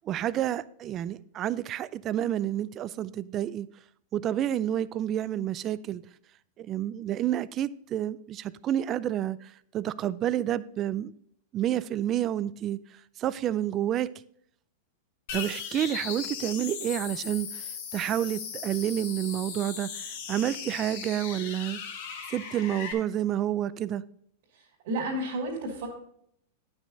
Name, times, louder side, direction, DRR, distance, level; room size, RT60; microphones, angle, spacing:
voice 1, 0.1-3.7 4.1-6.0 6.6-11.1 11.5-12.8 13.2-14.1 15.3-17.6 17.9-21.8 22.3-24.0, right 11 dB, 30° right, 0.3 m, -29 dB
sound 1, 15.3-22.9, left 7 dB, 60° left, 1.7 m, -38 dB
voice 2, 24.5-25.9, right 1 dB, 60° right, 2.6 m, -32 dB
9.6 x 6.1 x 3.9 m
supercardioid pair, 140°, 0 cm